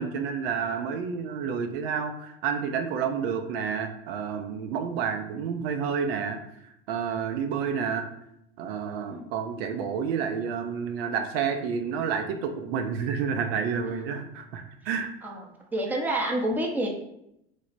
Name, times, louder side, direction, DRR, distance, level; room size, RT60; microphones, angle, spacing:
voice 1, 0.0-8.0 8.6-15.1, right 6 dB, 65° right, 5 dB, 0.5 m, -30 dB
voice 2, 15.2-16.9, right 1 dB, 5° right, 0 dB, 0.6 m, -29 dB
3.2 x 2.0 x 4.0 m, 0.80 s
hypercardioid pair, 85°, 32 cm